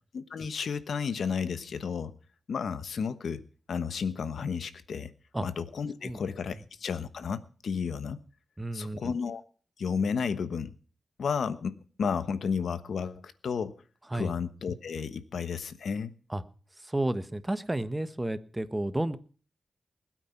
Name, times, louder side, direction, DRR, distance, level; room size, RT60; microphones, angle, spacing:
voice 1, 0.1-2.1 2.5-5.1 5.4-8.2 8.7-9.4 9.8-10.7 11.2-13.7 14.1-16.1, left 6 dB, 80° left, 13 dB, 1.1 m, -32 dB
voice 2, 8.6-9.2 14.1-14.4 16.3-16.4 16.8-19.2, right 1 dB, 15° right, 13 dB, 1.2 m, -32 dB
20.5 x 9.0 x 5.9 m, 0.41 s
cardioid pair, 80°, 0 cm